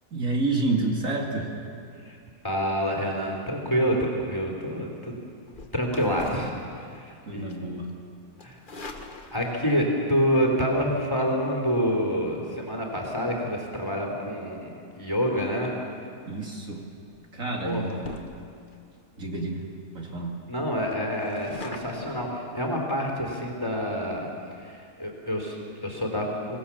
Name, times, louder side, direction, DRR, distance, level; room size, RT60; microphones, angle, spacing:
voice 1, 0.1-1.5 7.3-7.9 16.3-16.8 17.3-18.1 19.2-19.6 19.9-20.3, right 2 dB, 55° right, -1 dB, 3.0 m, -29 dB
voice 2, 2.4-5.1 5.7-7.5 8.4-8.6 9.3-15.7 17.6-18.0 20.5-24.3 24.6-26.6, equal, 15° left, 0 dB, 3.3 m, -27 dB
sound 1, 5.4-7.1 7.5-7.8 8.4-9.8 11.1-11.3 16.4-16.6 17.1-17.3 17.7-18.8 19.3-19.4 19.6-19.7 20.0-20.1 20.5-22.2, left 2 dB, 35° left, 1.5 m, -43 dB
25.5 x 17.5 x 7.2 m, 2.4 s
omnidirectional pair, 1.7 m